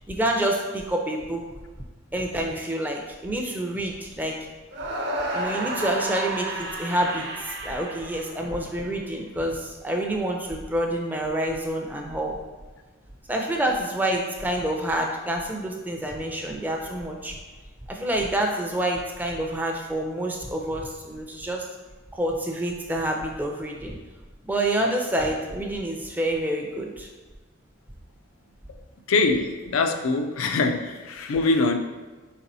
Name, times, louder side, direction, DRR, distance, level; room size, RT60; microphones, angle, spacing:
voice 1, 0.0-1.4 2.1-4.5 5.3-12.4 13.3-17.4 17.9-21.7 22.1-24.0 24.4-27.1 31.3-31.4, right 1 dB, 10° right, 1 dB, 0.4 m, -28 dB
sound 1, 4.7-8.9, right 1 dB, 55° right, 0.7 m, -31 dB
voice 2, 29.1-31.8, left 3 dB, 90° left, 6 dB, 0.4 m, -23 dB
4.7 x 4.2 x 2.6 m, 1.3 s
head